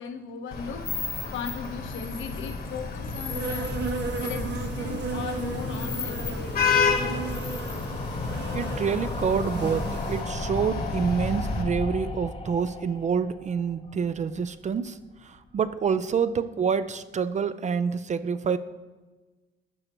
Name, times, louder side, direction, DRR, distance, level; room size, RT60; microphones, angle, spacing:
voice 1, 0.0-3.8 4.2-6.8, left 6 dB, 75° left, 6 dB, 1.1 m, -38 dB
Vehicle horn car horn honking / Traffic noise roadway noise, 0.5-11.6, left 5 dB, 50° left, 1.2 m, -31 dB
sound 1, 2.1-14.8 15.1-15.2 15.4-15.5 15.7-15.8, left 3 dB, 30° left, 0.7 m, -36 dB
Insect, 3.1-10.3, right 4 dB, 60° right, 1.2 m, -35 dB
voice 2, 8.5-18.6, right 6 dB, 35° right, 12 dB, 0.4 m, -27 dB
12.0 x 6.5 x 3.0 m, 1.2 s
cardioid pair, 90°, 20 cm